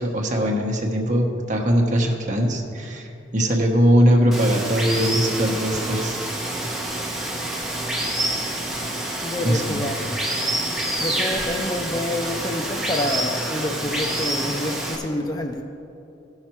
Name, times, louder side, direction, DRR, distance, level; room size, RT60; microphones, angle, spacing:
voice 1, 0.0-6.2 9.4-9.8 10.8-10.9, equal, 40° right, 1 dB, 1.1 m, -21 dB
Water, 4.3-15.0, right 1 dB, ahead, 1.1 m, -27 dB
voice 2, 9.2-10.2 10.8-15.6, left 1 dB, 20° left, 4 dB, 0.4 m, -28 dB
15.5 x 5.8 x 4.4 m, 2.7 s
head